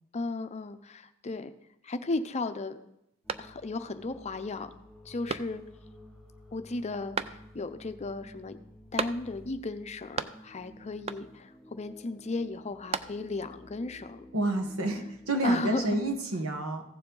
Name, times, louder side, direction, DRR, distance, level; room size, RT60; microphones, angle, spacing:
voice 1, 0.1-1.5 1.8-2.8 3.4-4.7 5.1-5.6 6.5-8.6 8.9-14.2 15.4-16.0, left 2 dB, 30° left, 10 dB, 0.5 m, -35 dB
sound 1, 3.2-16.1, equal, ahead, 3.4 m, -53 dB
sound 2, 3.3-4.0 4.4-4.5 5.3-5.9 7.1-7.8 9.0-9.6 9.8-10.7 11.1-11.6 12.5-13.5, right 6 dB, 30° right, 0.3 m, -37 dB
voice 2, 14.3-16.8, right 1 dB, 80° right, 5 dB, 1.3 m, -29 dB
15.0 x 7.1 x 3.8 m, 0.82 s
head